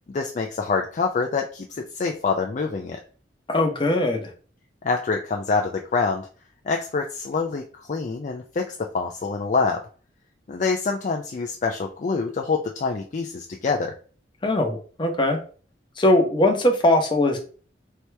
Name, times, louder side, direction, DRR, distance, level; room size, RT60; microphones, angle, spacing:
voice 1, 0.1-3.0 4.8-6.3 6.7-9.8 10.5-13.9, left 4 dB, 40° left, 2 dB, 0.4 m, -26 dB
voice 2, 3.5-4.3 14.4-15.4 16.0-17.4, left 1 dB, 25° left, 2 dB, 0.8 m, -20 dB
4.6 x 2.9 x 3.3 m, 0.40 s
head